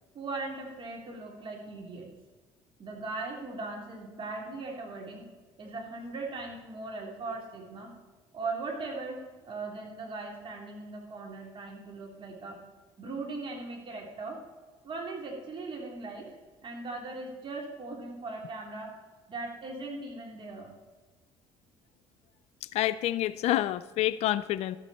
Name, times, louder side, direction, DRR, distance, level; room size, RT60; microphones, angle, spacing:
voice 1, 0.1-2.1 2.8-5.3 5.6-7.9 8.3-12.6 13.0-14.4 14.8-19.0 19.3-20.7, right 3 dB, 45° right, 0 dB, 3.4 m, -39 dB
voice 2, 22.7-24.8, left 14 dB, 65° left, 15 dB, 0.5 m, -28 dB
13.0 x 8.3 x 4.3 m, 1.3 s
supercardioid pair, 75°, 12 cm